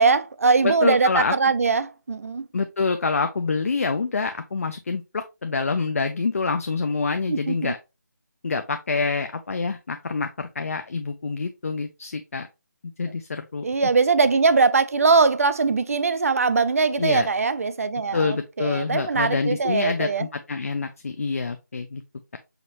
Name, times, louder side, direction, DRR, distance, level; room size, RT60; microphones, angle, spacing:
voice 1, 0.0-2.5 7.3-7.7 13.6-20.3, right 4 dB, 50° right, 0.4 m, -21 dB
voice 2, 0.6-1.3 2.5-7.8 8.4-12.5 13.0-13.6 17.0-17.3 18.1-22.0, left 4 dB, 50° left, 0.4 m, -26 dB
5.0 x 3.0 x 2.8 m
figure-of-eight pair, 170°, 10 cm